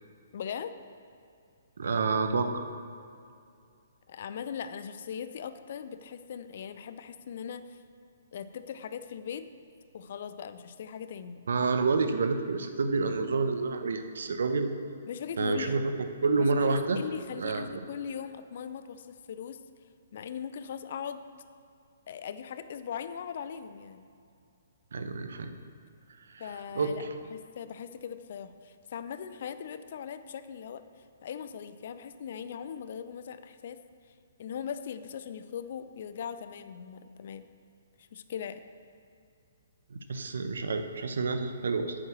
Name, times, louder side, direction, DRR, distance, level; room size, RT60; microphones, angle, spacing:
voice 1, 0.3-0.7 4.1-7.8 8.3-9.5 9.9-11.4 15.0-15.8 16.3-19.6 20.1-21.2 22.1-24.1 26.4-27.0 27.3-30.8 31.2-33.8 34.4-37.4 38.0-38.6, left 7 dB, 50° left, 11 dB, 0.6 m, -39 dB
voice 2, 1.8-2.6 11.5-14.7 15.4-15.8 16.2-17.0 17.4-17.8 24.9-25.5 26.3-26.4 26.7-27.1 39.9-41.9, right 4 dB, 65° right, 8 dB, 0.9 m, -28 dB
9.3 x 8.8 x 6.2 m, 2.4 s
figure-of-eight pair, 125°, 0 cm